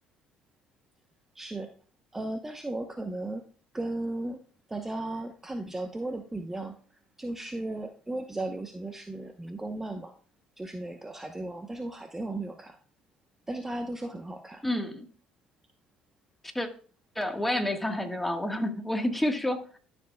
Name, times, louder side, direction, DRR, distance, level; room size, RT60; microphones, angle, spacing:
voice 1, 1.3-1.7 2.1-3.4 3.7-4.4 4.7-10.1 10.6-12.8 13.5-14.6, right 2 dB, 15° right, 5 dB, 0.8 m, -36 dB
voice 2, 14.6-15.1 16.5-16.7 17.1-19.7, left 1 dB, 5° left, 5 dB, 1.4 m, -29 dB
12.5 x 7.0 x 2.2 m, 0.41 s
supercardioid pair, 80°, 3 cm